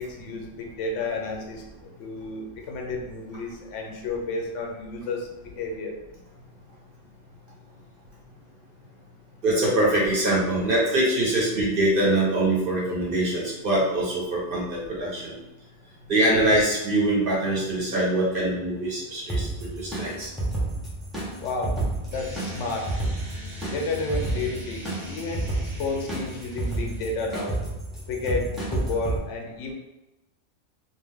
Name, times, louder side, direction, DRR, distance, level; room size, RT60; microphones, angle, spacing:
voice 1, 0.0-5.3 5.6-5.9 21.4-21.8 22.1-22.9 23.7-25.5 25.8-27.6 28.1-29.7, left 3 dB, 85° left, 1 dB, 0.9 m, -31 dB
voice 2, 9.4-15.3 16.1-20.3, right 1 dB, 50° right, -5 dB, 1.0 m, -23 dB
sound 1, 19.3-29.2, right 2 dB, ahead, 0.6 m, -31 dB
sound 2, 22.1-27.2, left 1 dB, 25° right, 1.0 m, -40 dB
2.5 x 2.2 x 3.4 m, 0.99 s
omnidirectional pair, 1.2 m